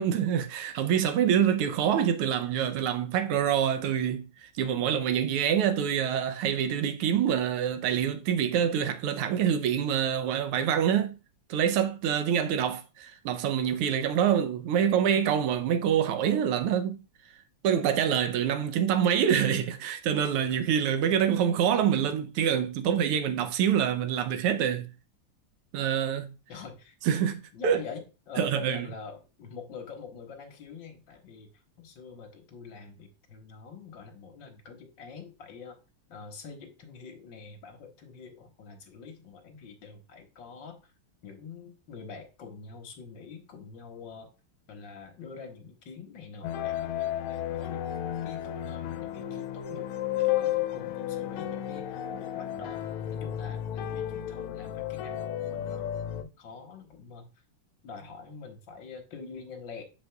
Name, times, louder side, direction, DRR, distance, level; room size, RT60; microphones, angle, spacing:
voice 1, 0.0-11.2 11.5-17.0 17.6-24.9 25.7-26.3 27.0-27.8 28.4-28.9, right 9 dB, 85° right, 1.7 m, -26 dB
voice 2, 26.5-27.0 27.5-31.5 31.8-35.8 36.1-40.9 41.2-44.3 44.7-47.9 48.2-49.9 50.2-52.8 53.1-57.3 57.8-59.8, left 5 dB, 60° left, 1.9 m, -45 dB
sound 1, 46.4-56.2, left 11 dB, 80° left, 1.4 m, -33 dB
7.2 x 6.5 x 2.3 m
omnidirectional pair, 2.4 m